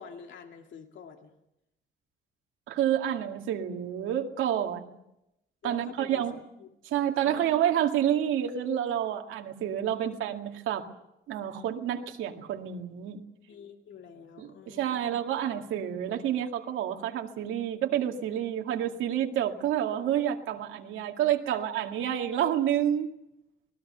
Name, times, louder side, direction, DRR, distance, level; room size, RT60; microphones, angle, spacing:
voice 1, 0.0-1.3 5.6-6.3 6.6-6.7 7.2-7.6 13.5-15.1 21.5-21.6, left 6 dB, 70° left, 4 dB, 2.3 m, -46 dB
voice 2, 2.7-5.0 5.6-6.4 6.8-10.8 11.3-13.2 14.4-23.1, right 10 dB, 90° right, 3 dB, 2.1 m, -29 dB
25.5 x 19.5 x 6.8 m, 0.87 s
cardioid pair, 90°, 20 cm